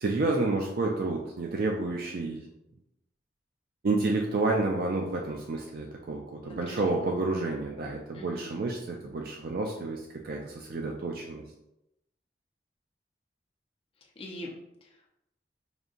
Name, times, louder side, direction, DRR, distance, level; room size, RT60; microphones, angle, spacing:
voice 1, 0.0-2.4 3.8-11.4, right 3 dB, 55° right, 0 dB, 0.4 m, -30 dB
voice 2, 6.4-7.1 8.1-8.5 14.0-15.1, left 1 dB, 30° left, -2 dB, 0.7 m, -44 dB
5.0 x 2.7 x 2.5 m, 0.87 s
head